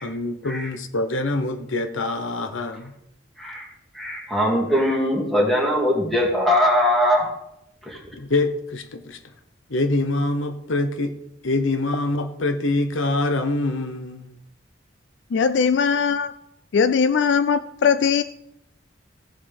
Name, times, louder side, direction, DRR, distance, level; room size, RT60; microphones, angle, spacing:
voice 1, 0.0-2.9 8.1-9.2 9.7-11.1 11.4-14.3, left 2 dB, 80° left, 0.9 m, -25 dB
voice 2, 3.9-7.3 7.9-8.0, equal, ahead, 2.4 m, -21 dB
voice 3, 15.3-16.3 16.7-18.2, left 6 dB, 65° left, 0.3 m, -20 dB
16.5 x 7.3 x 3.4 m
head